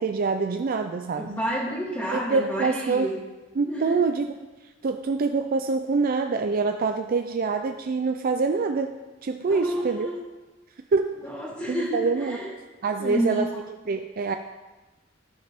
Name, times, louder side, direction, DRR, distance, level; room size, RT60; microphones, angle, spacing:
voice 1, 0.0-1.3 2.1-3.1 3.6-4.3 4.6-10.1 10.9-11.2 11.7-12.4 12.8-13.5 13.9-14.3, right 4 dB, 45° right, 6 dB, 0.4 m, -25 dB
voice 2, 1.2-3.2 3.7-4.0 9.5-10.2 11.2-12.5 13.0-13.5, equal, 15° left, -8 dB, 1.7 m, -29 dB
13.5 x 5.2 x 4.4 m, 1.2 s
head